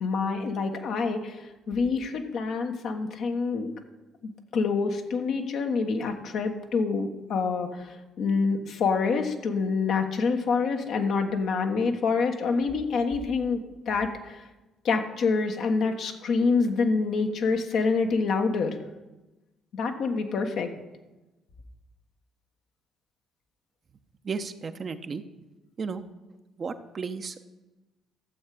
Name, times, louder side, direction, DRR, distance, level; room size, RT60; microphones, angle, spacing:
voice 1, 0.0-3.7 4.5-14.4 14.8-18.8 19.7-20.8, left 4 dB, 60° left, 4 dB, 1.2 m, -27 dB
voice 2, 24.2-25.2 25.8-26.0 26.6-27.4, right 5 dB, 45° right, 8 dB, 0.8 m, -34 dB
12.5 x 7.5 x 4.9 m, 1.1 s
hypercardioid pair, 50°, 0 cm